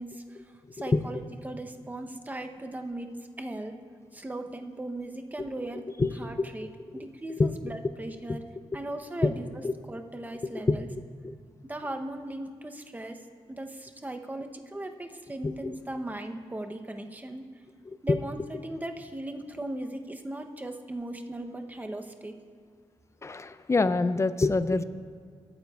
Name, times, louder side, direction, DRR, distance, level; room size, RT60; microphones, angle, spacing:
voice 1, 0.0-3.8 4.1-8.4 8.7-10.9 11.6-13.2 13.5-17.5 18.0-22.4, right 1 dB, 15° right, 5 dB, 0.7 m, -38 dB
voice 2, 23.2-24.8, left 3 dB, 25° left, 13 dB, 0.4 m, -25 dB
20.5 x 9.1 x 2.3 m, 2.1 s
wide cardioid pair, 105°, 11 cm